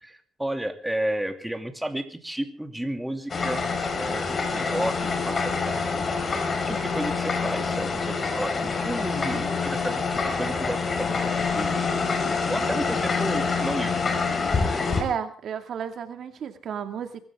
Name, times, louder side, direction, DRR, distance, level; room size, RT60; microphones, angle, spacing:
voice 1, 0.0-3.6 4.0-6.1 6.7-11.7 12.5-14.0, right 1 dB, 5° right, 6 dB, 2.7 m, -32 dB
sound 1, 3.3-15.0, left 4 dB, 40° left, 4.5 m, -26 dB
voice 2, 15.0-17.2, right 7 dB, 65° right, 7 dB, 2.2 m, -32 dB
23.5 x 14.0 x 3.7 m, 0.44 s
cardioid pair, 90°, 0 cm